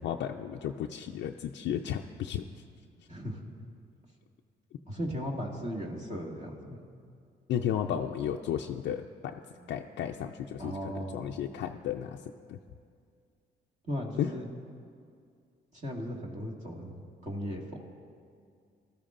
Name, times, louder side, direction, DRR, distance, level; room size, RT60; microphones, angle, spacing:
voice 1, 0.0-2.4 7.5-9.4 9.7-12.2 12.5-12.6 14.2-14.3, left 9 dB, 75° left, 3 dB, 0.5 m, -33 dB
voice 2, 3.1-3.4 4.9-6.8 10.6-11.2 13.8-14.5 15.7-17.8, equal, 40° right, -2 dB, 2.0 m, -37 dB
17.5 x 13.5 x 2.5 m, 2.3 s
cardioid pair, 75°, 19 cm